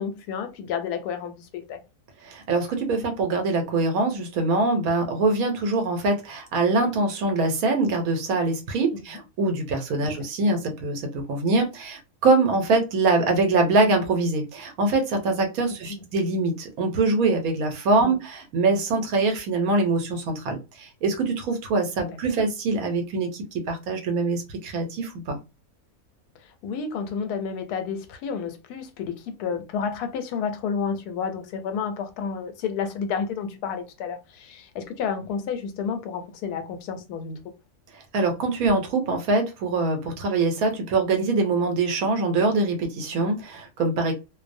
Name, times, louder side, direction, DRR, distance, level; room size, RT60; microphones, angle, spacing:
voice 1, 0.0-1.8 9.1-9.2 10.0-10.2 15.9-16.0 18.0-18.1 22.1-22.2 26.4-37.4, left 6 dB, 90° left, 1.1 m, -31 dB
voice 2, 2.2-25.4 38.1-44.1, right 3 dB, 75° right, 1.1 m, -24 dB
2.6 x 2.0 x 2.5 m
omnidirectional pair, 1.6 m